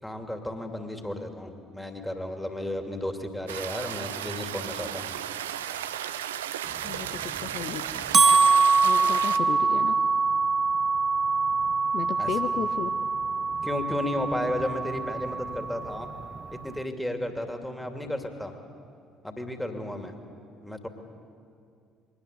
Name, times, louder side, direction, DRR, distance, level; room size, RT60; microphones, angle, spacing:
voice 1, 0.0-5.1 12.2-12.4 13.6-16.1 16.5-18.5 19.2-20.1 20.6-20.9, left 1 dB, 5° left, 5 dB, 2.8 m, -33 dB
sound 1, 3.5-9.4, right 11 dB, 75° right, 0.6 m, -34 dB
voice 2, 6.8-8.3 8.8-10.0 11.9-13.0, left 9 dB, 50° left, 9 dB, 0.7 m, -35 dB
sound 2, 6.9-16.8, right 4 dB, 30° right, 0.6 m, -24 dB
23.0 x 20.0 x 8.3 m, 2.3 s
figure-of-eight pair, 50°, 0 cm